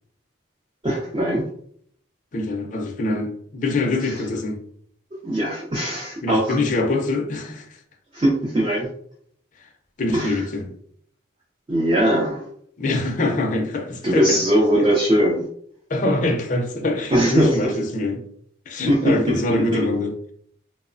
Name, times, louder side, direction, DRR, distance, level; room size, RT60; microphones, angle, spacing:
voice 1, 0.8-1.5 4.0-4.2 5.1-6.6 8.1-8.9 10.1-10.4 11.7-12.4 14.0-15.5 17.1-17.7 18.9-19.9, right 1 dB, 25° right, 0.4 m, -21 dB
voice 2, 2.3-4.6 6.2-7.7 10.0-10.7 12.8-14.4 15.9-18.2 18.7-20.1, left 2 dB, 40° left, 0.4 m, -24 dB
2.9 x 2.0 x 2.5 m
head